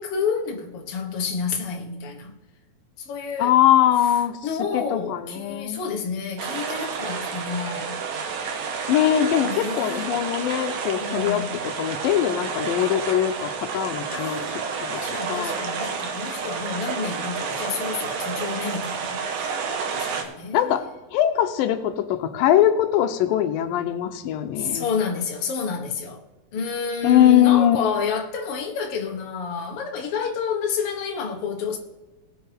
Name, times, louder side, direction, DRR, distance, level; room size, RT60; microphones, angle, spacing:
voice 1, 0.0-2.3 3.0-3.6 4.4-8.1 9.4-10.1 11.0-11.6 14.1-19.6 19.9-20.8 24.6-26.2 26.5-31.8, left 5 dB, 50° left, 2.0 m, -29 dB
voice 2, 3.4-4.4 4.7-5.8 8.9-11.4 11.8-14.4 14.8-15.0 15.3-15.5 20.5-24.9 27.0-27.8, left 11 dB, 85° left, 2.4 m, -21 dB
sound 1, 6.4-20.2, right 5 dB, 75° right, 2.8 m, -30 dB
19.5 x 8.7 x 3.5 m
omnidirectional pair, 4.0 m